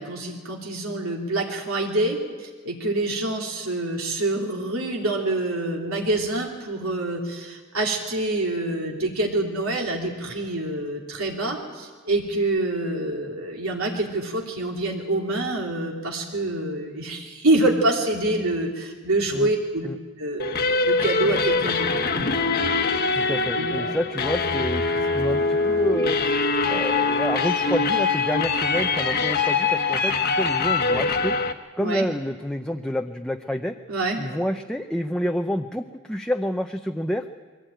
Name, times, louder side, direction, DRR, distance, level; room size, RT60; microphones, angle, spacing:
voice 1, 0.0-19.9 20.2-21.9 23.6-24.0 31.8-32.1 33.9-34.2, right 2 dB, 80° right, -1 dB, 2.9 m, -26 dB
sound 1, 20.4-31.5, left 4 dB, 45° left, 1.2 m, -23 dB
voice 2, 23.1-26.2 26.7-31.4 31.8-33.8 34.2-37.3, equal, 5° left, 4 dB, 0.5 m, -28 dB
22.5 x 16.0 x 9.0 m, 1.5 s
head